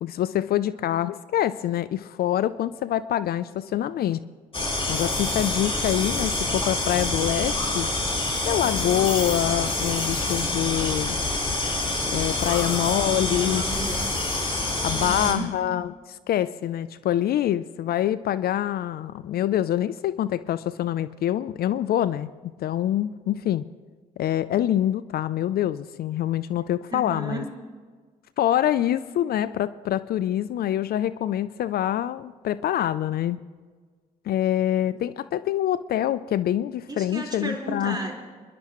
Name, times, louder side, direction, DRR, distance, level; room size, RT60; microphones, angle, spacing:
voice 1, 0.0-4.2 4.9-7.9 8.5-11.2 12.1-13.6 14.8-22.3 22.6-23.6 24.2-27.4 28.4-33.4 34.3-38.0, left 11 dB, 60° left, 16 dB, 0.5 m, -25 dB
voice 2, 3.5-3.8 8.5-9.0 12.4-14.1 14.9-15.5 26.9-27.5 36.9-38.1, right 1 dB, 25° right, 0 dB, 4.4 m, -35 dB
sound 1, 4.5-15.3, left 2 dB, 30° left, 4.1 m, -26 dB
26.0 x 11.5 x 3.0 m, 1.5 s
hypercardioid pair, 50°, 18 cm